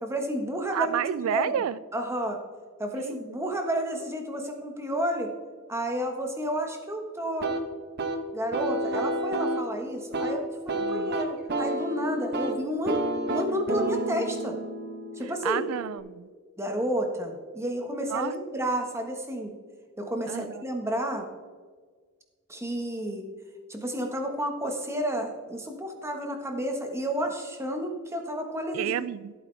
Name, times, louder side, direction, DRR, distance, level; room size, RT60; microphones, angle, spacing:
voice 1, 0.0-1.0 1.3-1.5 1.9-2.4 2.8-5.3 5.7-7.5 8.3-14.5 15.2-15.6 16.6-19.5 20.0-21.3 22.5-23.3 23.7-28.9, equal, 10° right, 3 dB, 1.4 m, -31 dB
voice 2, 0.7-1.8 2.9-3.4 10.8-11.1 15.2-16.3 18.1-18.3 20.3-20.6 28.7-29.3, right 9 dB, 75° right, 17 dB, 0.3 m, -31 dB
sound 1, 7.4-16.0, right 1 dB, 50° right, 1.1 m, -31 dB
14.5 x 8.5 x 3.4 m, 1.5 s
head